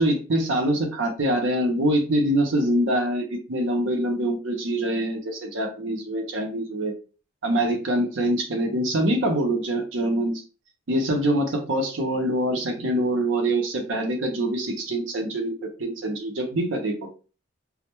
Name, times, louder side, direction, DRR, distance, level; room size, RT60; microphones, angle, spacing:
voice 1, 0.0-6.9 7.4-10.4 10.9-16.9, right 1 dB, 75° right, 4 dB, 0.6 m, -24 dB
2.1 x 2.1 x 2.9 m, 0.34 s
head